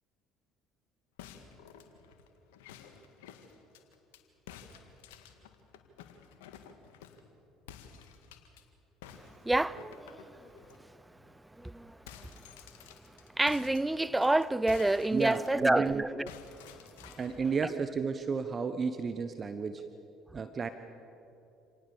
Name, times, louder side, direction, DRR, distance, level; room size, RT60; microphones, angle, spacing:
sound 1, 1.2-4.2 4.5-7.3 7.7-8.6 9.0-10.8 11.2-11.3 11.6-15.9 16.3-17.4, left 8 dB, 85° left, 1.8 m, -52 dB
voice 1, 9.4-10.5 11.6-12.3 13.4-16.3 17.0-17.1, right 2 dB, 10° right, 0.7 m, -29 dB
voice 2, 15.1-16.0 17.2-19.8 20.3-20.7, right 5 dB, 40° right, 1.2 m, -32 dB
27.5 x 18.5 x 7.3 m
hypercardioid pair, 65°, 0 cm